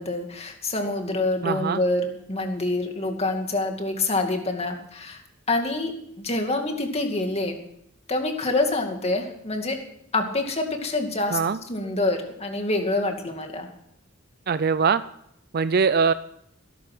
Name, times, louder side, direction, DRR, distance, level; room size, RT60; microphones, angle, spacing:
voice 1, 0.0-5.2 5.5-7.6 8.1-9.8 10.1-11.4 11.7-13.7, left 2 dB, 30° left, 4 dB, 2.4 m, -26 dB
voice 2, 1.4-1.8 11.3-11.6 14.5-15.0 15.5-16.1, right 5 dB, 50° right, 13 dB, 0.5 m, -22 dB
18.5 x 11.5 x 6.2 m, 0.73 s
head